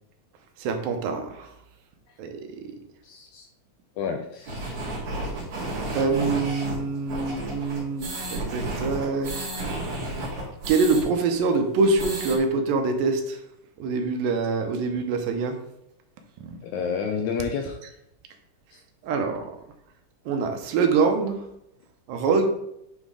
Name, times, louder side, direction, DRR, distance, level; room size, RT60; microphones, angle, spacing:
voice 1, 0.6-1.5 2.2-2.7 5.9-9.5 10.7-13.4 13.8-15.6 16.4-16.6 19.0-19.6 20.3-21.4 22.1-22.5, right 4 dB, 90° right, 5 dB, 2.6 m, -25 dB
voice 2, 3.0-3.5 4.0-4.7 16.6-17.8 18.7-18.8, left 6 dB, 80° left, 4 dB, 1.7 m, -30 dB
sound 1, 4.5-11.0 11.4-11.5 11.8-12.4, right 2 dB, 60° right, 3.5 m, -32 dB
9.0 x 4.1 x 3.7 m, 0.79 s
omnidirectional pair, 3.9 m